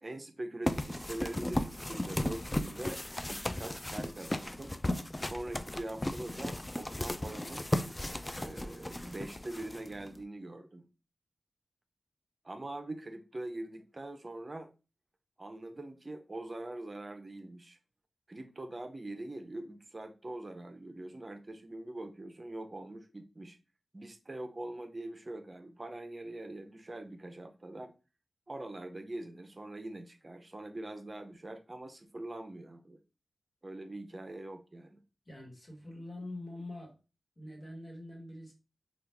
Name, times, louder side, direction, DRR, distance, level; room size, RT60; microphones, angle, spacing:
voice 1, 0.0-3.0 3.3-4.7 5.2-7.6 8.4-10.9 12.4-14.7 15.4-17.8 18.3-23.6 23.9-27.9 28.5-33.0 33.6-35.0, right 1 dB, 35° right, 0.6 m, -43 dB
sound 1, 0.7-10.2, left 1 dB, 20° left, 0.3 m, -36 dB
voice 2, 35.2-37.0 37.4-38.5, left 1 dB, 40° left, 1.4 m, -44 dB
3.1 x 2.3 x 3.4 m
cardioid pair, 40°, 0 cm